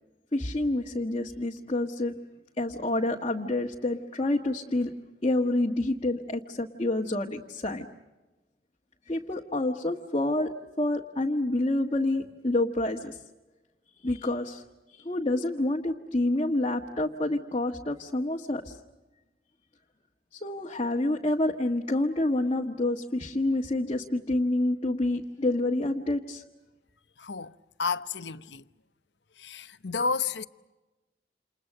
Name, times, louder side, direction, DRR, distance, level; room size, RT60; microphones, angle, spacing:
voice 1, 0.3-2.1 2.6-4.9 5.2-7.9 9.1-10.5 10.8-13.2 14.0-14.6 14.9-18.8 20.4-26.4, left 2 dB, 35° left, 1.5 m, -28 dB
voice 2, 27.2-28.6 29.4-30.4, left 4 dB, 85° left, 0.9 m, -31 dB
29.0 x 28.5 x 6.6 m
head